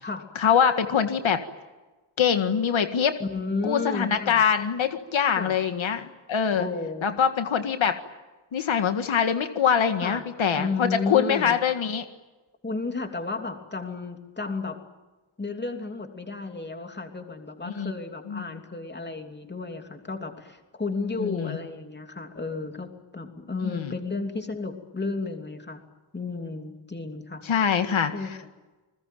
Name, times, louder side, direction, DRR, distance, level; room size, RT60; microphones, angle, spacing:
voice 1, 0.4-1.4 2.2-3.2 3.6-6.7 7.0-8.0 8.5-12.1 17.8-17.9 18.3-18.4 21.2-21.6 23.6-23.9 27.4-28.1, left 7 dB, 75° left, 8 dB, 1.8 m, -24 dB
voice 2, 3.2-4.4 5.4-5.5 6.5-7.1 10.0-10.2 10.6-11.6 12.6-14.8 15.4-25.8 26.1-27.8 28.1-28.3, left 3 dB, 20° left, 5 dB, 3.0 m, -33 dB
29.5 x 21.0 x 9.2 m, 1.2 s
wide cardioid pair, 135°, 47 cm